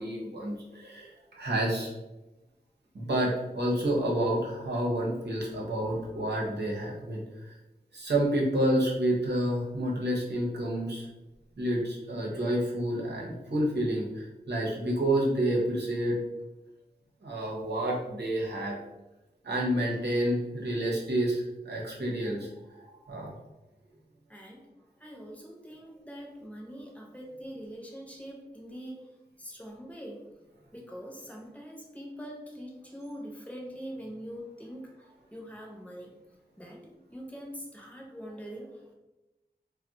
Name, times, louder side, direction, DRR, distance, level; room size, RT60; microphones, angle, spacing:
voice 1, 0.0-1.9 2.9-7.5 7.9-11.1 11.6-16.2 17.2-18.8 19.4-23.3, right 1 dB, 85° right, -3 dB, 0.8 m, -29 dB
voice 2, 5.5-6.2 24.3-24.7 25.0-29.1 29.4-30.3 30.7-36.1 36.6-38.9, equal, 10° left, -1 dB, 0.8 m, -44 dB
2.3 x 2.2 x 3.9 m, 1.0 s
wide cardioid pair, 60°, 17 cm